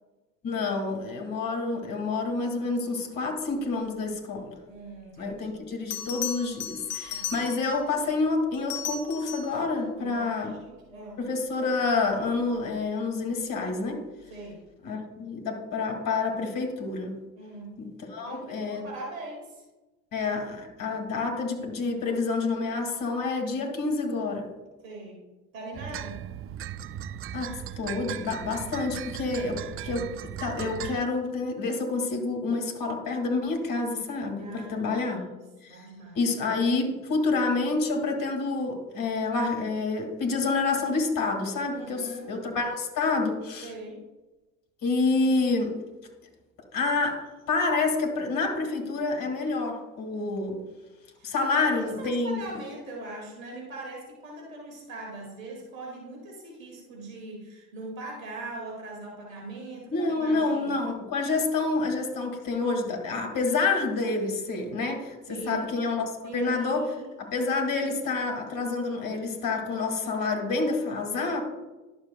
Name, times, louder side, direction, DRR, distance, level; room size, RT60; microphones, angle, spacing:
voice 1, 0.4-4.6 5.2-10.6 11.2-14.1 14.8-17.1 17.8-18.9 20.1-24.5 27.3-35.2 35.6-35.9 36.1-43.7 44.8-45.8 46.7-50.6 51.2-52.4 59.9-65.2 65.5-71.4, left 3 dB, 55° left, 3 dB, 2.1 m, -28 dB
voice 2, 4.7-5.6 7.0-7.4 10.0-11.3 14.3-14.6 17.4-17.8 18.2-19.6 24.8-25.3 25.5-26.2 34.4-35.3 35.7-36.2 41.7-42.3 43.6-44.0 51.2-60.8 65.3-65.7 66.2-67.1, right 2 dB, 90° right, -1 dB, 2.2 m, -41 dB
Bell, 5.3-5.4 5.9-7.8 8.5-9.6 12.3-12.5, left 8 dB, 85° left, 0.9 m, -35 dB
sound 1, 25.7-31.0, right 10 dB, 35° right, 0.4 m, -37 dB
11.5 x 6.6 x 2.2 m, 1.1 s
hypercardioid pair, 55°, 39 cm